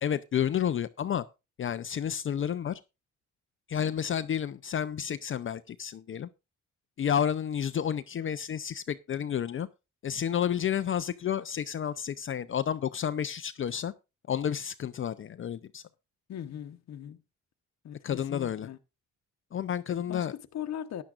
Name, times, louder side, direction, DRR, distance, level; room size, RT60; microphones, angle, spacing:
voice 1, 0.0-1.3 1.6-2.8 3.7-6.3 7.0-9.7 10.0-13.9 14.3-15.8 18.0-18.7 19.5-20.3, left 9 dB, 45° left, 0.6 m, -30 dB
voice 2, 16.3-17.2 17.8-18.8 19.9-21.0, left 10 dB, 60° left, 1.0 m, -39 dB
14.5 x 10.5 x 2.5 m
cardioid pair, 90°, 30 cm